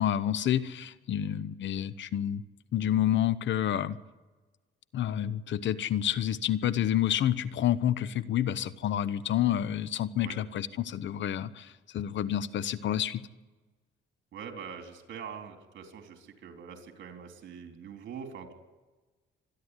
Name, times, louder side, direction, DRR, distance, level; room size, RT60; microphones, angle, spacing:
voice 1, 0.0-2.4 2.7-4.0 4.9-13.2, left 11 dB, 70° left, 16 dB, 1.0 m, -29 dB
voice 2, 14.3-18.5, right 7 dB, 70° right, 4 dB, 3.7 m, -43 dB
25.5 x 11.0 x 9.9 m, 1.2 s
cardioid pair, 90°, 20 cm